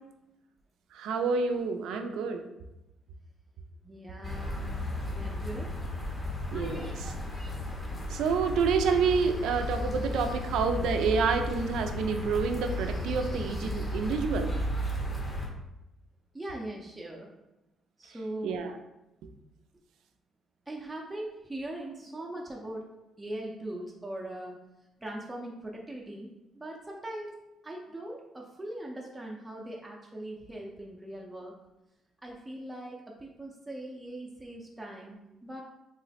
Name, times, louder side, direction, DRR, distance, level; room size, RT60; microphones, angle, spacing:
voice 1, 0.9-2.5 6.5-7.1 8.1-14.5 18.4-18.8, right 5 dB, 85° right, 7 dB, 0.3 m, -28 dB
voice 2, 3.8-5.8 16.3-17.3 18.0-18.6 20.7-22.9 23.2-24.5 25.0-26.3 26.5-27.3 27.6-31.5 32.2-35.6, right 1 dB, 15° right, -2 dB, 0.5 m, -40 dB
sound 1, 4.2-15.5, left 1 dB, 25° left, 0.7 m, -34 dB
3.1 x 2.0 x 4.1 m, 0.94 s
cardioid pair, 90°, 0 cm